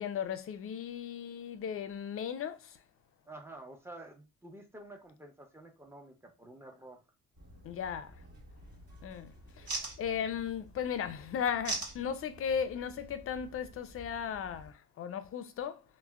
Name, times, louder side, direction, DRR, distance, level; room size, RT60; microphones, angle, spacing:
voice 1, 0.0-2.8 7.6-8.2 9.0-15.8, left 8 dB, 50° left, 0.4 m, -36 dB
voice 2, 3.3-7.0, right 1 dB, 10° right, 0.6 m, -50 dB
sound 1, 7.4-14.7, right 3 dB, 55° right, 1.2 m, -45 dB
3.4 x 2.1 x 2.2 m
cardioid pair, 90°, 30 cm